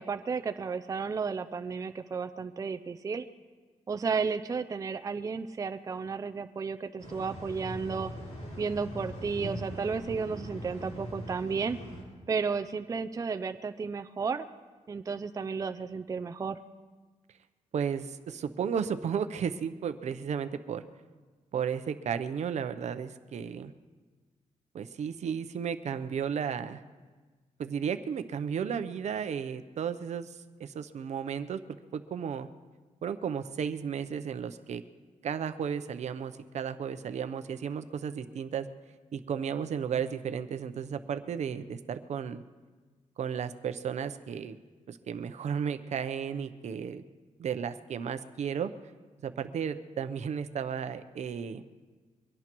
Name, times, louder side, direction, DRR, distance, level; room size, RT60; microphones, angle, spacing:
voice 1, 0.0-3.2 3.9-8.1 8.6-11.8 12.3-14.5 14.9-16.6, right 5 dB, 25° right, 9 dB, 0.4 m, -33 dB
sound 1, 7.0-12.0, equal, 60° left, 4.3 m, -41 dB
voice 2, 17.7-20.8 21.5-23.7 24.7-26.8 27.6-31.6 31.9-32.5 33.0-34.8 35.2-38.7 39.1-42.4 43.2-44.6 44.9-47.0 47.4-48.7 49.2-51.6, right 7 dB, 65° right, 11 dB, 0.7 m, -34 dB
23.5 x 17.0 x 3.0 m, 1.4 s
wide cardioid pair, 130°, 13 cm